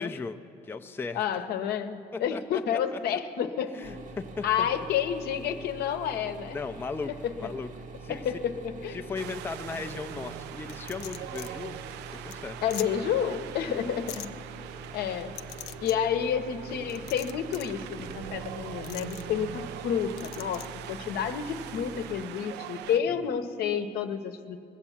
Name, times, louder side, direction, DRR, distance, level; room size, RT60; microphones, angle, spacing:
voice 1, 0.0-1.2 2.1-3.0 3.7-4.7 6.5-7.7 8.0-8.2 8.9-11.8 12.1-12.6 13.7-14.0 23.1-23.4, left 4 dB, 15° left, 7 dB, 0.4 m, -37 dB
voice 2, 1.1-3.8 4.4-6.6 7.1-7.3 8.1-9.0 12.6-14.3 14.9-15.3 15.8-24.6, left 8 dB, 70° left, 8 dB, 0.9 m, -30 dB
sound 1, 3.8-22.3, right 3 dB, 50° right, 0.9 m, -45 dB
Wind, 9.1-23.0, right 11 dB, 85° right, 0.4 m, -43 dB
sound 2, 10.7-11.5 11.9-12.0 12.3-12.4 12.7-12.9 14.1-14.3 15.4-16.0 16.9-17.7 18.8-19.2 20.2-20.7, left 14 dB, 90° left, 0.5 m, -41 dB
21.0 x 8.2 x 7.2 m, 2.4 s
cardioid pair, 110°, 17 cm